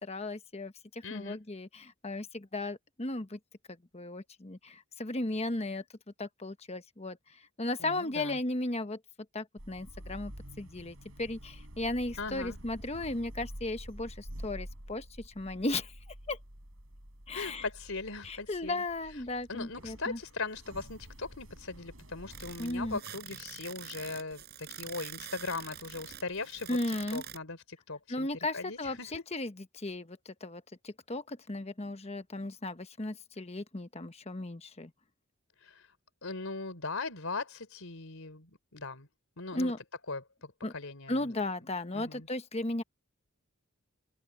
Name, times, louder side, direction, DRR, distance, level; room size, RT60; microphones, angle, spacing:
voice 1, 0.0-3.4 3.9-5.8 6.2-7.2 7.6-9.0 9.3-10.3 10.6-15.9 16.3-16.4 17.3-17.6 18.2-20.2 22.6-23.0 26.7-27.2 28.1-34.9 39.5-39.8 40.6-40.7 41.1-42.8, left 2 dB, 30° left, 1.2 m, -35 dB
voice 2, 1.0-1.4 7.8-8.4 12.2-12.6 17.3-19.2 19.5-29.2 35.6-35.9 36.2-39.1 39.4-39.7 40.1-41.3 41.9-42.3, left 3 dB, 80° left, 3.6 m, -40 dB
sound 1, 9.6-23.0, equal, 70° right, 6.4 m, -48 dB
sound 2, 22.3-27.4, right 10 dB, 50° right, 6.0 m, -46 dB
head